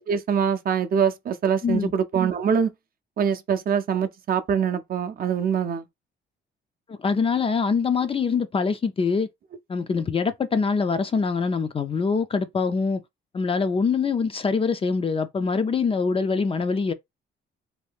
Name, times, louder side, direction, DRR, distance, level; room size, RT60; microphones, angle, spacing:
voice 1, 0.1-2.7 3.2-5.9, right 7 dB, 50° right, 0.5 m, -24 dB
voice 2, 6.9-9.3 9.7-13.0 13.3-16.9, left 5 dB, 30° left, 0.4 m, -24 dB
2.7 x 2.2 x 3.4 m
cardioid pair, 90°, 20 cm